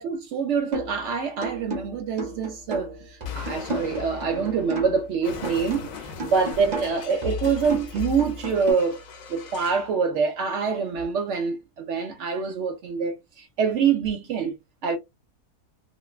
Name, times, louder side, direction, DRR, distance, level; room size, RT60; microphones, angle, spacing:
voice 1, 0.0-9.0 9.3-14.6 14.8-15.0, right 5 dB, 75° right, 0.6 m, -25 dB
sound 1, 0.7-1.0 1.4-5.1 5.4-8.7, equal, 35° right, 0.8 m, -33 dB
Explosion, 3.2-9.9, left 5 dB, 65° left, 1.0 m, -41 dB
2.9 x 2.2 x 2.2 m
omnidirectional pair, 1.8 m